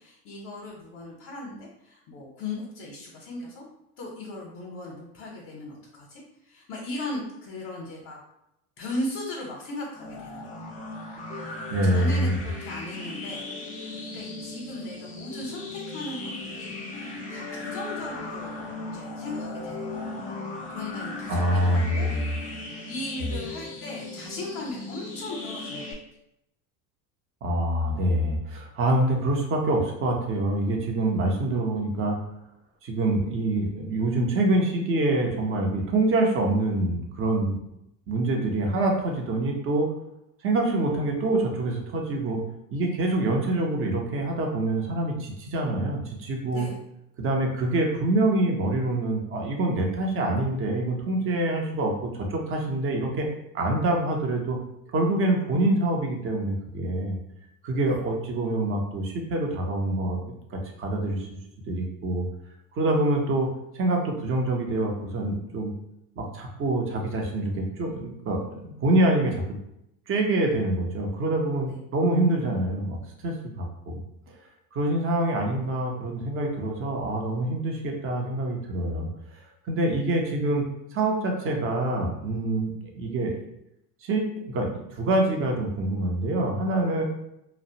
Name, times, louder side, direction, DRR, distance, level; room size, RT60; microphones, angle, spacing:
voice 1, 0.0-3.6 4.0-8.2 8.8-10.5 11.8-16.2 16.4-19.9 20.7-22.1 22.8-25.9 46.5-46.8 57.8-58.0 71.7-71.8, left 2 dB, 45° left, -3 dB, 0.7 m, -37 dB
sound 1, 10.0-25.9, left 2 dB, 20° left, 0.3 m, -37 dB
voice 2, 11.7-12.4 21.3-22.2 23.2-23.3 27.4-32.2 32.8-37.6 38.1-39.9 40.4-42.4 42.7-46.7 47.2-53.3 53.5-54.6 54.9-57.2 57.6-61.3 61.7-62.3 62.7-63.5 63.7-65.7 66.2-69.4 70.1-74.0 74.7-79.1 79.6-80.6 80.9-83.4 84.0-87.0, right 1 dB, 30° right, 1 dB, 0.6 m, -26 dB
2.3 x 2.0 x 2.7 m, 0.82 s
hypercardioid pair, 90°, 48 cm